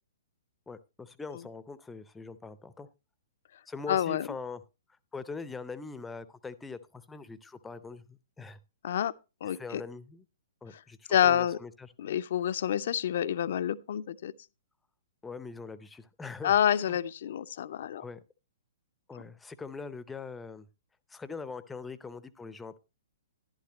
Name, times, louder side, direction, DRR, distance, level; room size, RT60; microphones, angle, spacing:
voice 1, 0.7-2.9 3.7-4.6 5.1-8.6 9.4-10.2 10.6-11.9 15.2-17.0 18.0-18.2 19.1-20.7 21.1-22.8, left 4 dB, 10° left, 0.6 m, -42 dB
voice 2, 3.9-4.3 8.8-9.1 9.4-9.8 11.1-11.6 12.0-14.3 16.4-18.0, left 10 dB, 55° left, 0.5 m, -28 dB
11.5 x 11.5 x 2.9 m
figure-of-eight pair, 115°, 0 cm